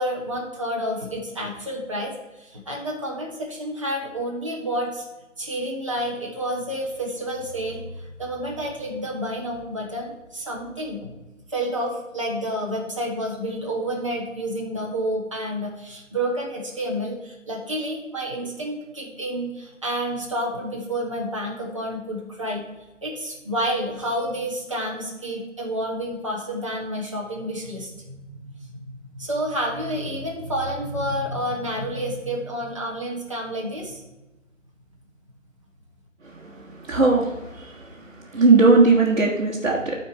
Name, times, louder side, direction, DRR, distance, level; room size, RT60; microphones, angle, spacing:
voice 1, 0.0-2.1 2.4-5.0 5.4-7.8 8.2-11.2 11.5-22.6 23.0-28.2 29.1-34.0, equal, 25° right, -4 dB, 1.5 m, -29 dB
voice 2, 36.2-38.0 38.3-40.0, right 3 dB, 60° right, -6 dB, 1.7 m, -19 dB
13.0 x 4.5 x 4.2 m, 1.1 s
figure-of-eight pair, 175°, 39 cm